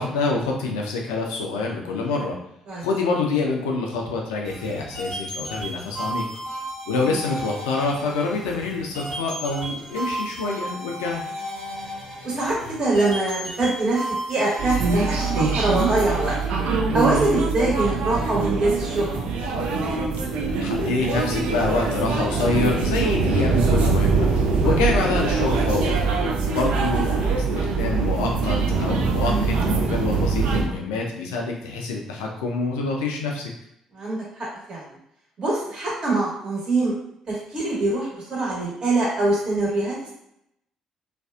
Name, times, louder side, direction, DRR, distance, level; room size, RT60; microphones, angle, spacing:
voice 1, 0.0-2.3 2.8-6.2 6.9-11.2 20.6-24.3 24.6-26.0 26.5-33.5, left 3 dB, 75° left, 0 dB, 0.4 m, -26 dB
sound 1, 4.4-16.4, equal, 85° right, 1.5 m, -34 dB
voice 2, 6.9-7.2 12.2-16.3 16.9-19.1 24.6-24.8 33.9-34.8 35.4-36.9 37.3-40.1, right 2 dB, 45° right, -5 dB, 1.1 m, -24 dB
sound 2, 14.6-30.6, right 4 dB, 60° right, 0.4 m, -23 dB
2.5 x 2.3 x 2.3 m, 0.77 s
figure-of-eight pair, 45°, 2 cm